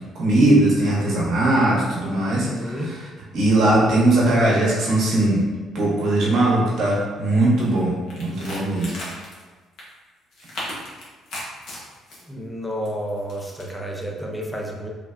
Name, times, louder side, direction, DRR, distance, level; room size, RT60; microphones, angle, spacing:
voice 1, 0.1-2.9 3.3-5.4 5.7-8.9, right 1 dB, 65° right, -5 dB, 0.9 m, -19 dB
voice 2, 2.4-3.0 12.2-14.9, equal, 5° left, -1 dB, 0.6 m, -30 dB
sound 1, 7.6-7.8 8.1-9.4 9.8-9.9 10.3-12.2 12.8-13.6, left 1 dB, 70° left, 0.8 m, -36 dB
3.7 x 2.0 x 2.4 m, 1.3 s
hypercardioid pair, 60°, 0 cm